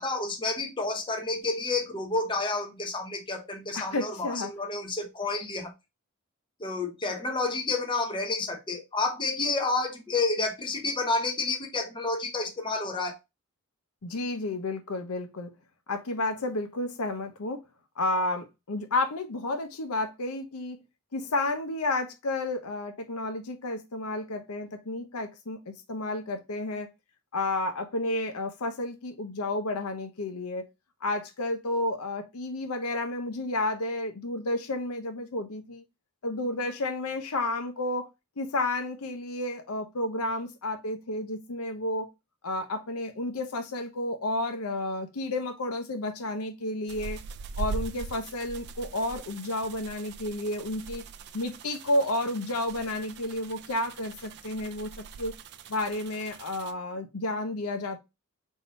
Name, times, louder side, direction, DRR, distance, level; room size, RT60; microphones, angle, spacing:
voice 1, 0.0-5.7 6.6-13.2, left 3 dB, 20° left, 0.7 m, -30 dB
voice 2, 3.7-4.5 14.0-15.5 15.9-17.6 18.0-20.8 21.1-26.9 27.3-30.7 31.0-35.8 36.2-38.1 38.4-42.1 42.4-47.2 47.6-51.0 51.3-55.3 55.7-58.0, left 2 dB, 90° left, 0.8 m, -31 dB
sound 1, 46.9-56.7, right 4 dB, 50° right, 0.4 m, -41 dB
3.6 x 2.8 x 4.0 m
head